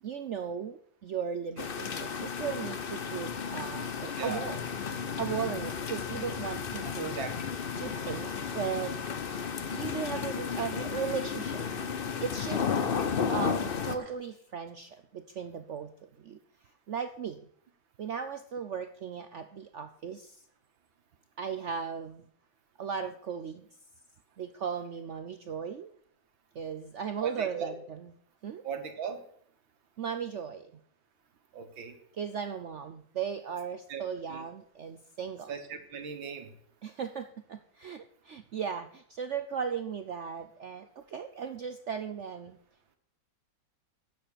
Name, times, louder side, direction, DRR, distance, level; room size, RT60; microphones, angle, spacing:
voice 1, 0.0-4.6 4.9-7.2 7.8-9.0 9.7-11.7 12.2-12.7 13.3-16.4 16.9-17.5 18.0-20.4 21.4-22.3 22.8-23.7 24.4-25.9 26.5-28.1 28.4-28.6 30.0-30.7 32.1-35.5 36.8-42.6, right 7 dB, 70° right, 8 dB, 0.6 m, -37 dB
sound 1, 1.6-14.0, left 6 dB, 50° left, 0.6 m, -33 dB
voice 2, 6.8-7.3 12.8-12.9 27.2-27.7 28.6-29.2 31.5-31.9 33.9-34.0 34.3-34.4 35.5-36.5, right 6 dB, 90° right, 6 dB, 2.3 m, -38 dB
sound 2, 7.7-11.1 12.3-14.1, right 3 dB, 40° right, 2.2 m, -53 dB
9.3 x 7.5 x 8.4 m, 0.63 s
omnidirectional pair, 2.1 m